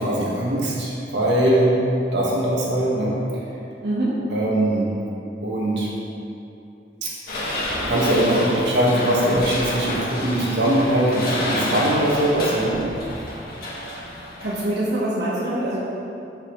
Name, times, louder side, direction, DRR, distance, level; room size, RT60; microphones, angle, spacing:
voice 1, 0.0-1.7 2.1-3.2 4.3-4.9 5.4-5.9 7.0-7.1 7.9-12.8, right 1 dB, 90° right, -5 dB, 1.8 m, -21 dB
voice 2, 3.8-4.2 14.4-15.8, right 1 dB, 70° right, -9 dB, 1.4 m, -24 dB
sound 1, 7.3-14.6, left 1 dB, 55° left, 1.9 m, -29 dB
12.5 x 5.6 x 3.3 m, 2.8 s
head